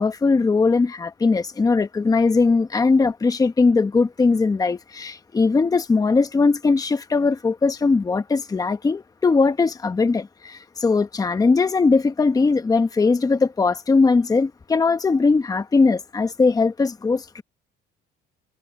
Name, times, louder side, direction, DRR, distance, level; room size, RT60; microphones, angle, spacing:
voice 1, 0.0-17.4, left 4 dB, 20° left, 1.1 m, -20 dB
cardioid pair, 125°, 19 cm